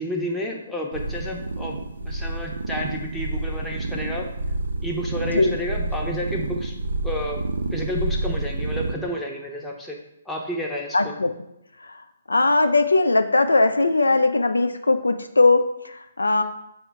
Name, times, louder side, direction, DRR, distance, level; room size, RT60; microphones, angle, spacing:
voice 1, 0.0-4.3 4.8-6.7 7.0-7.4 7.7-10.0 10.3-11.1, equal, 5° left, -2 dB, 0.6 m, -30 dB
sound 1, 0.9-8.9, right 2 dB, 70° right, 0.4 m, -29 dB
voice 2, 10.9-11.3 12.3-16.4, left 3 dB, 85° left, 8 dB, 0.3 m, -19 dB
4.6 x 2.1 x 4.6 m, 0.84 s
figure-of-eight pair, 135°, 0 cm